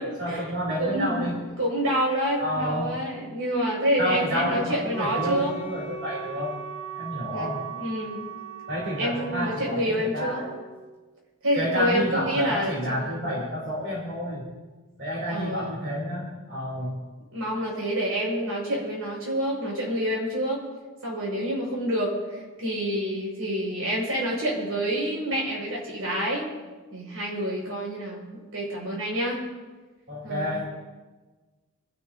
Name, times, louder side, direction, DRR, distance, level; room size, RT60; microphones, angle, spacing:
voice 1, 0.0-1.4 2.4-3.0 4.0-6.6 6.9-7.7 8.7-10.5 11.5-14.4 15.0-17.0 30.1-30.6, equal, 55° right, -3 dB, 3.3 m, -30 dB
voice 2, 0.8-5.5 7.3-8.2 9.0-10.4 11.4-13.4 15.3-15.8 17.3-20.6 21.0-26.5 26.9-29.4 30.2-30.6, equal, 80° right, -2 dB, 5.9 m, -28 dB
Wind instrument woodwind instrument, 4.9-10.8, right 7 dB, 15° right, 4.0 m, -38 dB
27.0 x 13.0 x 2.8 m, 1.3 s
head